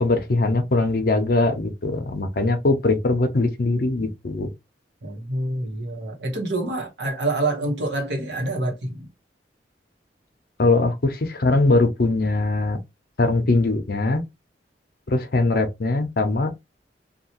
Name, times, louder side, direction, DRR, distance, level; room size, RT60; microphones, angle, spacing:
voice 1, 0.0-4.5 10.6-12.8 13.2-14.2 15.1-16.5, left 2 dB, 55° left, 0.6 m, -21 dB
voice 2, 5.0-9.1, right 2 dB, 85° right, 1.1 m, -27 dB
2.9 x 2.3 x 2.8 m
head